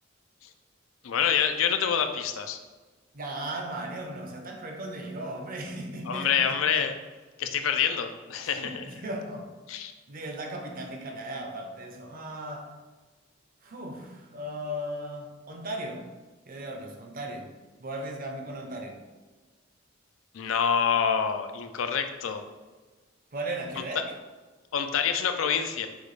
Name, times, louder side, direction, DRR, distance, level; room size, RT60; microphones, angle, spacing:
voice 1, 1.0-2.6 6.1-6.9 7.4-8.8 9.7-9.9 20.3-22.4 24.7-25.9, left 7 dB, 85° left, 7 dB, 0.4 m, -26 dB
voice 2, 3.1-6.9 8.4-12.7 13.6-16.1 16.5-17.5 17.8-19.0 23.3-24.1, right 1 dB, 45° right, 3 dB, 0.6 m, -37 dB
6.1 x 2.4 x 3.2 m, 1.3 s
head